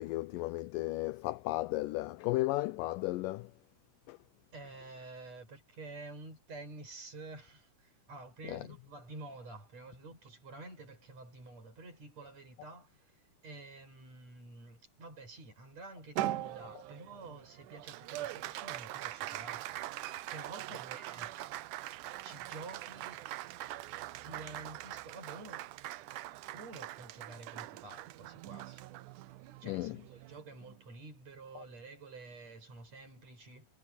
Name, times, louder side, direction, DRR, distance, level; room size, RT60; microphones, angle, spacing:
voice 1, 0.0-3.5 4.1-4.2 8.5-8.6 29.6-30.0, left 19 dB, 80° left, 2.0 m, -34 dB
voice 2, 4.5-19.7 20.3-21.4 22.2-23.3 24.2-25.7 26.5-28.9 29.6-33.7, right 3 dB, 45° right, 8.7 m, -49 dB
Applause, 16.2-30.8, right 15 dB, 80° right, 1.8 m, -42 dB
omnidirectional pair, 4.4 m